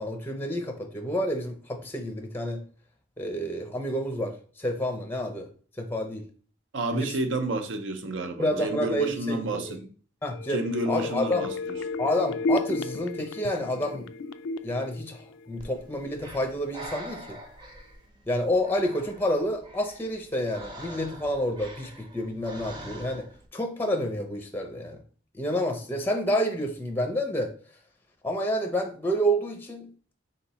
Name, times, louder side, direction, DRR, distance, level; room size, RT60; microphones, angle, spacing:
voice 1, 0.0-2.6 3.2-5.5 5.8-6.2 6.9-7.1 8.4-9.7 10.2-10.6 10.9-11.5 12.0-14.1 14.6-17.4 18.3-23.3 23.5-25.0 25.3-27.5 28.2-29.9, equal, 10° left, 0.5 m, -29 dB
voice 2, 6.7-9.9 10.5-11.8, right 2 dB, 80° right, 0.6 m, -30 dB
sound 1, 10.3-16.0 16.3-16.4, left 2 dB, 85° left, 0.3 m, -33 dB
Breathing, 15.6-23.5, right 1 dB, 25° right, 0.7 m, -45 dB
3.8 x 2.9 x 4.0 m
head